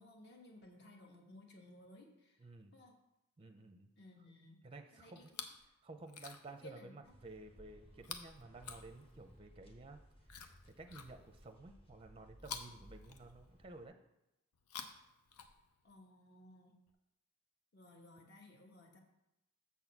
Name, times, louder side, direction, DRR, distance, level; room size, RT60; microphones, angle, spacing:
voice 1, 0.0-2.4 2.7-3.0 4.0-4.6 4.9-5.4 6.5-7.1 15.8-16.7 17.7-19.0, left 1 dB, 50° left, 1 dB, 1.2 m, -58 dB
voice 2, 2.4-2.7 3.4-3.9 4.6-5.3 5.8-10.0 10.7-14.0, right 2 dB, 25° right, 6 dB, 0.5 m, -53 dB
Chewing mastication, 5.2-5.7 6.0-6.7 8.0-9.4 10.3-11.5 12.4-13.7 14.5-15.9 16.9-17.0, left 7 dB, 90° left, 0.7 m, -51 dB
sound 1, 7.0-13.9, equal, 25° left, 0.9 m, -61 dB
7.2 x 4.1 x 5.9 m, 0.90 s
head